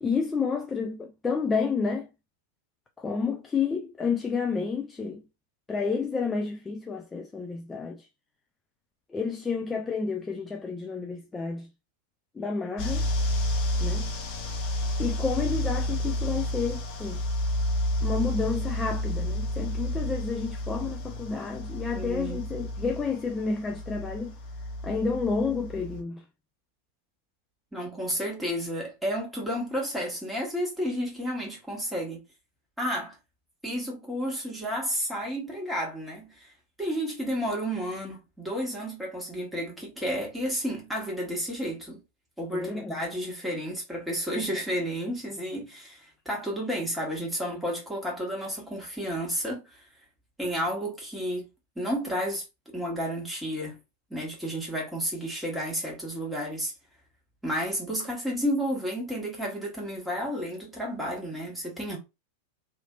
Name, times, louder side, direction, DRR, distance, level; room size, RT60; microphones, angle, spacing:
voice 1, 0.0-2.1 3.0-5.2 5.7-8.1 9.1-11.7 12.3-13.1 13.8-14.0 15.0-17.2 18.0-24.3 24.8-26.2 42.5-43.0, left 5 dB, 15° left, 0.4 m, -30 dB
sound 1, 12.8-26.0, left 1 dB, 40° left, 0.8 m, -30 dB
voice 2, 21.9-22.4 27.7-32.2 32.8-33.2 33.6-36.5 36.8-42.0 42.4-49.8 50.4-51.5 51.7-52.4 52.7-53.8 54.1-56.7 57.4-62.0, equal, 5° right, 1.6 m, -31 dB
3.1 x 2.8 x 2.4 m
figure-of-eight pair, 90°, 0 cm